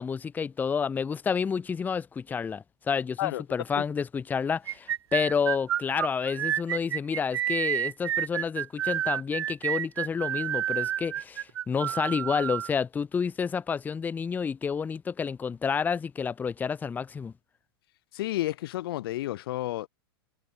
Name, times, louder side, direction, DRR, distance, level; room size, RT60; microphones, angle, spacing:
voice 1, 0.0-17.3, left 6 dB, 15° left, 0.4 m, -29 dB
sound 1, 4.7-12.7, right 11 dB, 80° right, 0.6 m, -29 dB
voice 2, 18.1-19.9, left 15 dB, 65° left, 1.1 m, -31 dB
hypercardioid pair, 110°, 13 cm